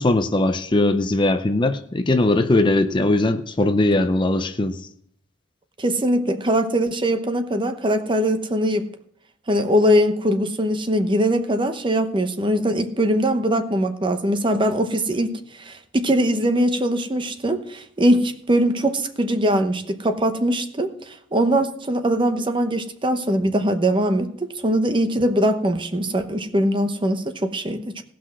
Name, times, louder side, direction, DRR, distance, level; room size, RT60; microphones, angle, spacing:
voice 1, 0.0-4.8, left 2 dB, 25° left, 8 dB, 0.5 m, -20 dB
voice 2, 5.8-8.9 9.5-15.3 15.6-28.0, equal, 25° right, 8 dB, 0.8 m, -21 dB
17.5 x 5.9 x 6.1 m, 0.67 s
head